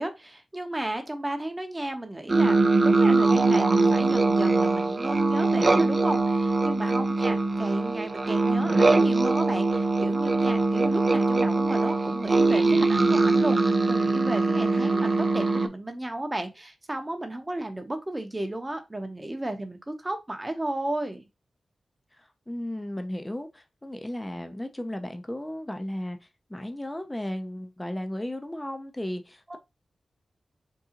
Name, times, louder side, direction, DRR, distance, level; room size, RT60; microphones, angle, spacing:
voice 1, 0.0-21.2 29.5-29.6, right 1 dB, 25° right, 0.7 m, -33 dB
sound 1, 2.3-15.7, right 3 dB, 40° right, 0.4 m, -22 dB
voice 2, 22.2-29.6, left 1 dB, 15° left, 0.5 m, -35 dB
3.7 x 2.6 x 2.8 m
cardioid pair, 60°, 0 cm